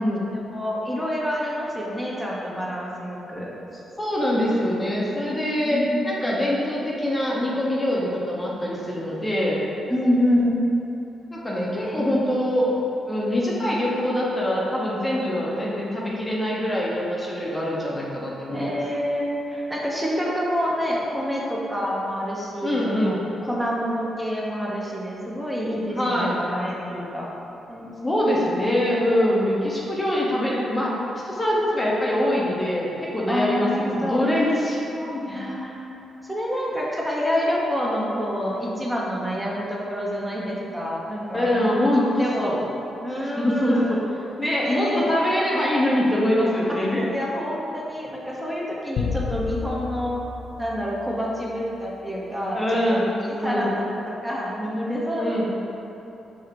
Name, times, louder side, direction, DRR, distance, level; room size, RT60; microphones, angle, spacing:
voice 1, 0.3-3.5 5.6-6.0 9.9-10.6 11.8-12.3 18.5-27.3 27.7-28.2 33.3-34.2 35.3-35.8 36.2-42.6 43.0-43.9 44.6-45.0 47.1-50.2 50.6-52.6 52.9-55.5, equal, 10° right, -5 dB, 1.0 m, -27 dB
voice 2, 4.0-5.8 6.0-9.6 11.3-12.7 13.1-18.7 22.6-23.2 26.0-26.4 28.0-35.4 41.3-42.6 43.4-47.1 52.5-53.7 55.2-55.5, left 1 dB, 20° left, -5 dB, 0.8 m, -24 dB
sound 1, 49.0-51.5, left 6 dB, 70° left, 0.3 m, -31 dB
4.8 x 2.4 x 4.4 m, 3.0 s
hypercardioid pair, 40°, 0 cm